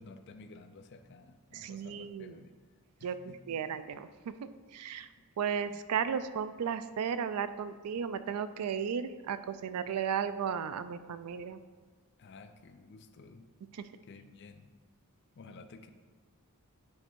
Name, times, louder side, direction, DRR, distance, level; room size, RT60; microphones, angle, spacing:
voice 1, 0.0-2.6 3.0-3.6 5.7-5.8 12.2-13.5 14.0-14.7 15.4-15.9, left 3 dB, 50° left, 8 dB, 0.4 m, -53 dB
voice 2, 1.5-2.4 3.0-3.2 3.5-4.1 4.4-5.1 5.4-11.6, right 7 dB, 85° right, 13 dB, 0.4 m, -34 dB
8.5 x 3.3 x 4.5 m, 1.4 s
head